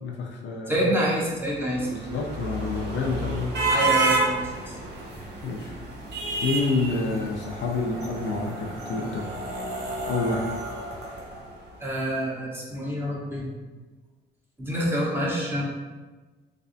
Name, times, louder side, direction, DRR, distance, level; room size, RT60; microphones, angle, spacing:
voice 1, 0.0-1.0 1.9-3.6 5.4-5.7 6.4-9.3 10.1-10.5, left 3 dB, 65° left, 1 dB, 0.5 m, -28 dB
voice 2, 0.7-1.9 3.7-4.5 11.8-13.5 14.6-15.6, right 1 dB, 10° right, -5 dB, 1.0 m, -27 dB
sound 1, 1.4-11.8, right 2 dB, 60° right, 0.8 m, -30 dB
3.3 x 3.3 x 2.6 m, 1.2 s
cardioid pair, 90°, 20 cm